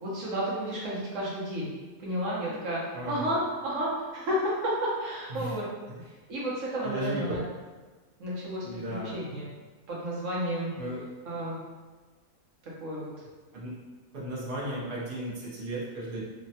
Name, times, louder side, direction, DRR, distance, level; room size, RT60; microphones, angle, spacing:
voice 1, 0.0-1.7 2.0-2.8 3.1-5.7 6.3-7.4 8.2-9.5 9.9-10.7 11.2-11.6 12.8-13.1, equal, 70° right, -6 dB, 1.1 m, -31 dB
voice 2, 2.9-3.4 5.3-5.5 6.8-7.4 8.6-9.2 10.8-11.1 13.5-13.8 14.1-16.2, right 1 dB, 45° right, -6 dB, 0.8 m, -35 dB
3.1 x 2.1 x 2.7 m, 1.3 s
omnidirectional pair, 1.4 m